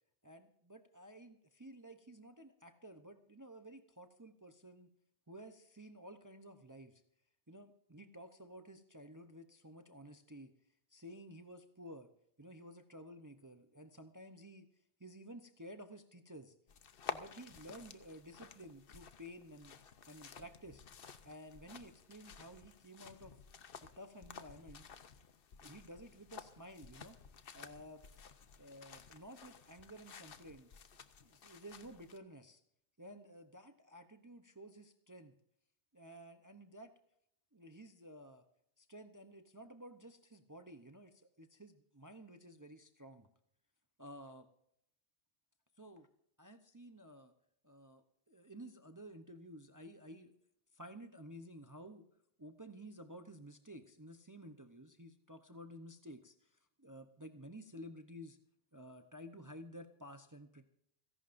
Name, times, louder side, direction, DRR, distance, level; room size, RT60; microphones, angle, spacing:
voice 1, 0.2-4.9 5.3-7.0 7.5-10.5 10.9-12.1 12.4-14.7 15.0-16.5 17.1-19.8 20.1-20.9 21.2-23.3 23.8-24.9 25.6-27.2 27.5-28.0 28.6-30.7 31.2-32.6 33.0-35.3 35.9-36.9 37.5-38.4 38.8-43.3 44.0-44.5 45.8-46.1 46.4-47.3 47.6-50.3 50.7-52.0 52.4-58.4 58.7-60.7, equal, 20° right, 7 dB, 0.7 m, -53 dB
sound 1, 16.7-32.2, left 7 dB, 60° left, 1.0 m, -53 dB
29.5 x 11.0 x 2.6 m, 0.72 s
omnidirectional pair, 1.1 m